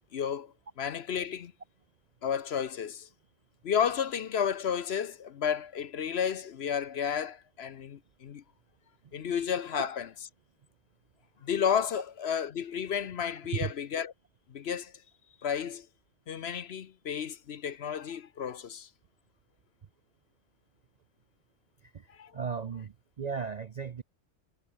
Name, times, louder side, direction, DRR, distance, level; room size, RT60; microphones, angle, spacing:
voice 1, 0.1-1.5 2.2-3.1 3.6-8.4 9.1-10.1 11.4-14.1 14.5-14.9 15.4-15.9 16.3-18.9 22.1-22.3, left 8 dB, 55° left, 1.0 m, -32 dB
voice 2, 22.3-24.0, right 6 dB, 50° right, 0.5 m, -36 dB
omnidirectional pair, 1.4 m